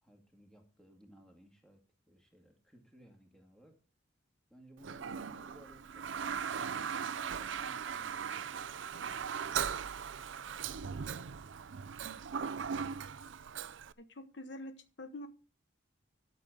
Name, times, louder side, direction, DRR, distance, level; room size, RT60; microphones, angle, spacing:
voice 1, 0.0-3.8 4.5-6.2 6.6-8.9, right 1 dB, 5° left, 2 dB, 2.2 m, -60 dB
Toilet flush, 4.8-13.9, right 7 dB, 75° right, 0.5 m, -39 dB
voice 2, 14.0-15.3, left 1 dB, 60° left, 9 dB, 1.0 m, -46 dB
12.0 x 6.8 x 4.9 m, 0.34 s
head